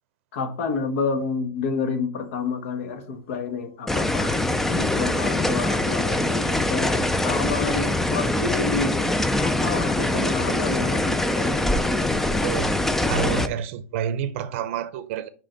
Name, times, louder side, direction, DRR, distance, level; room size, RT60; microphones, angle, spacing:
voice 1, 0.3-9.1 9.4-11.7, left 5 dB, 65° left, 1.5 m, -29 dB
sound 1, 2.2-12.6, equal, 40° left, 2.6 m, -51 dB
sound 2, 3.9-13.5, left 1 dB, 5° left, 0.4 m, -23 dB
sound 3, 4.5-11.0, left 4 dB, 25° left, 1.0 m, -44 dB
voice 2, 12.4-12.8 13.1-15.3, right 9 dB, 60° right, 0.6 m, -28 dB
7.5 x 5.0 x 3.9 m
supercardioid pair, 155°, 8 cm